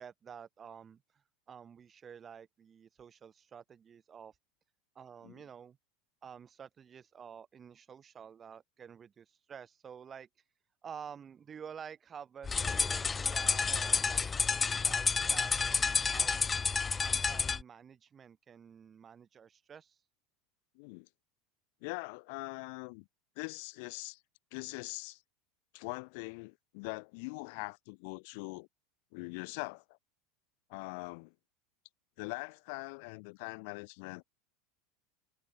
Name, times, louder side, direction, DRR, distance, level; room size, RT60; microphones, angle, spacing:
voice 1, 0.0-4.4 4.9-5.8 6.2-10.3 10.8-14.3 14.6-16.5 17.0-20.0, right 7 dB, 25° right, 7.5 m, -50 dB
sound 1, 12.4-17.6, left 5 dB, 20° left, 0.5 m, -30 dB
voice 2, 20.7-21.1 21.8-23.1 23.4-24.2 24.5-25.2 25.7-28.7 29.1-30.0 30.7-31.3 32.2-34.2, left 32 dB, 65° left, 4.2 m, -42 dB
supercardioid pair, 125°, 0 cm